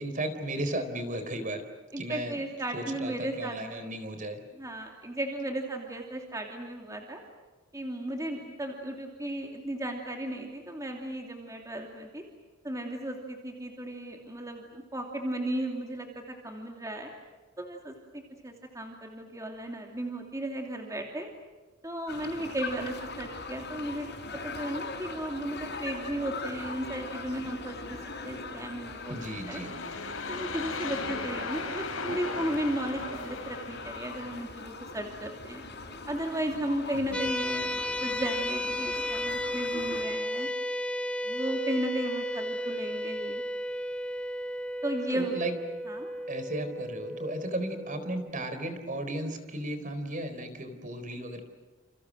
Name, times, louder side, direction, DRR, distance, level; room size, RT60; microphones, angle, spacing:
voice 1, 0.0-1.6 2.0-2.4 2.7-4.4 29.1-29.7 36.9-37.3 45.1-45.6 46.3-51.4, right 1 dB, 35° right, 9 dB, 4.0 m, -35 dB
voice 2, 1.9-3.9 4.6-7.2 7.7-12.2 12.6-17.1 17.6-21.3 21.8-24.1 24.4-29.2 29.5-29.6 30.3-35.6 36.1-37.7 38.0-40.5 41.2-43.4 44.8-45.3 45.9-46.1, right 1 dB, 15° right, 2 dB, 2.8 m, -35 dB
sound 1, 22.1-40.0, left 3 dB, 50° left, 6.1 m, -41 dB
sound 2, 28.9-34.3, left 4 dB, 75° left, 5.2 m, -38 dB
sound 3, 37.1-48.3, left 1 dB, 5° left, 1.6 m, -34 dB
30.0 x 29.0 x 6.4 m, 1.3 s
head